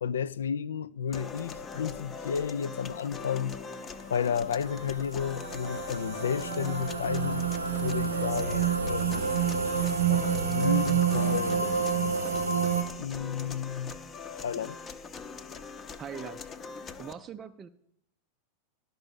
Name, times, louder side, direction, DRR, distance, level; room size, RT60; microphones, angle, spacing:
voice 1, 0.0-3.6 4.1-7.5 7.8-9.3 10.1-11.7 13.0-14.0 14.4-14.8, left 7 dB, 65° left, 0.3 m, -32 dB
sound 1, 1.1-17.1, left 5 dB, 25° left, 0.7 m, -41 dB
sound 2, 4.4-12.8, right 7 dB, 75° right, 0.6 m, -28 dB
voice 2, 16.0-16.4 17.0-17.7, right 8 dB, 25° right, 0.4 m, -41 dB
12.0 x 5.4 x 7.2 m
figure-of-eight pair, 90°, 0 cm